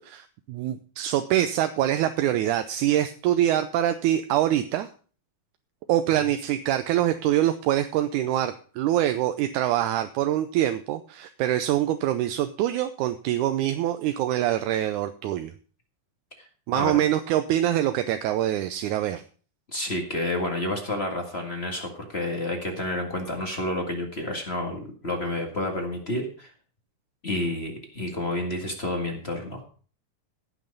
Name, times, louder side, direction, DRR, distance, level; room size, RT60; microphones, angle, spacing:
voice 1, 0.1-4.9 5.9-15.5 16.7-19.2, right 12 dB, 80° right, 9 dB, 2.1 m, -24 dB
voice 2, 16.7-17.0 19.7-26.5 27.2-29.6, left 1 dB, 25° left, 2 dB, 1.5 m, -30 dB
16.0 x 6.2 x 5.3 m, 0.41 s
omnidirectional pair, 3.6 m